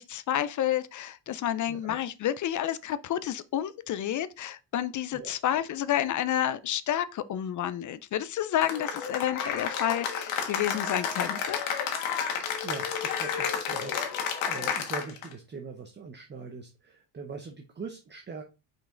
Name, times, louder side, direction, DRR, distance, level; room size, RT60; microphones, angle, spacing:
voice 1, 0.0-11.6, left 11 dB, 40° left, 0.5 m, -30 dB
Cheering / Applause, 8.6-15.3, left 7 dB, 80° left, 1.6 m, -31 dB
voice 2, 12.6-18.4, right 4 dB, 20° right, 0.8 m, -42 dB
5.5 x 4.6 x 3.7 m
cardioid pair, 115°, 48 cm